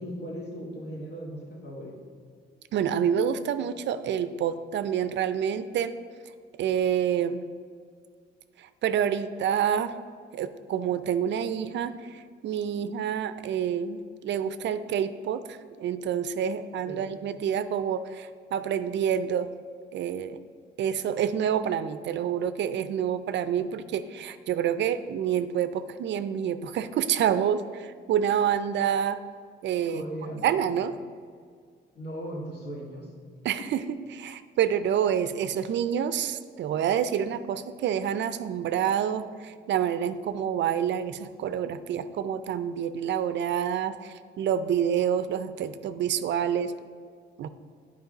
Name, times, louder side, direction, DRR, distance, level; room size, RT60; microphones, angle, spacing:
voice 1, 0.0-2.0 16.9-17.1 23.6-23.7 29.9-30.5 32.0-33.1 33.6-33.7, equal, 60° left, -2 dB, 2.0 m, -38 dB
voice 2, 2.7-5.9 6.6-7.4 8.6-10.0 10.3-19.5 19.9-20.4 20.8-29.2 29.6-30.0 30.4-31.0 33.4-33.8 34.1-46.7 47.4-47.5, right 8 dB, 65° right, 12 dB, 0.4 m, -28 dB
9.5 x 4.8 x 3.9 m, 2.1 s
cardioid pair, 90°, 20 cm